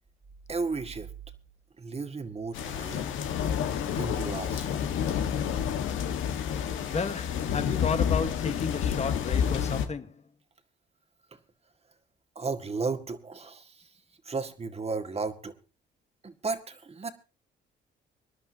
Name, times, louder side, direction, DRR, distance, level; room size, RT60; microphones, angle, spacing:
voice 1, 0.5-1.1 1.8-3.1 3.9-4.9 6.4-7.0 11.3-11.4 12.4-15.5 16.2-17.1, right 4 dB, 30° right, 1.9 m, -35 dB
sound 1, 2.5-9.9, left 8 dB, 80° left, 1.5 m, -29 dB
voice 2, 6.9-10.2, left 5 dB, 35° left, 1.3 m, -32 dB
25.5 x 11.0 x 2.8 m
cardioid pair, 90°, 20 cm